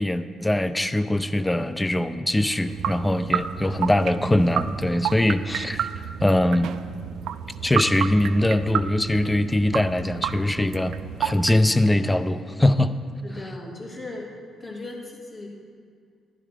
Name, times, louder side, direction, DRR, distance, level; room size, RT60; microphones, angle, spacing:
voice 1, 0.0-5.9 6.2-6.7 7.6-13.0, left 1 dB, 10° left, 12 dB, 0.5 m, -22 dB
sound 1, 2.6-11.5, right 9 dB, 75° right, 0.4 m, -31 dB
voice 2, 3.5-4.0 5.7-5.8 13.2-14.3 14.6-15.5, left 2 dB, 30° left, -4 dB, 3.0 m, -38 dB
11.0 x 10.5 x 3.4 m, 2.2 s
cardioid pair, 90°, 0 cm